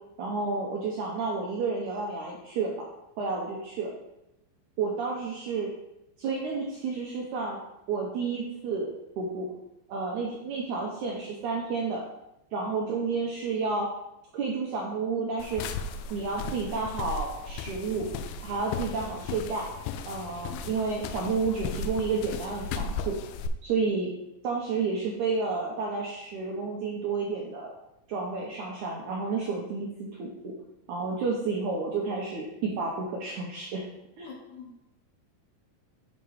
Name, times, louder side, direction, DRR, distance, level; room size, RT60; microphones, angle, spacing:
voice 1, 0.2-2.7 3.2-3.9 4.8-5.7 6.2-7.6 7.9-9.5 9.9-12.0 12.5-13.9 14.3-15.8 16.1-18.1 18.4-19.7 20.1-23.2 23.6-24.1 24.4-27.7 28.1-30.5 30.9-33.8 34.2-34.3, right 4 dB, 75° right, -3 dB, 1.8 m, -31 dB
sound 1, 15.4-23.5, left 4 dB, 85° left, 2.4 m, -36 dB
voice 2, 34.3-34.8, left 6 dB, 65° left, -1 dB, 2.3 m, -45 dB
7.0 x 5.2 x 4.7 m, 0.89 s
omnidirectional pair, 4.6 m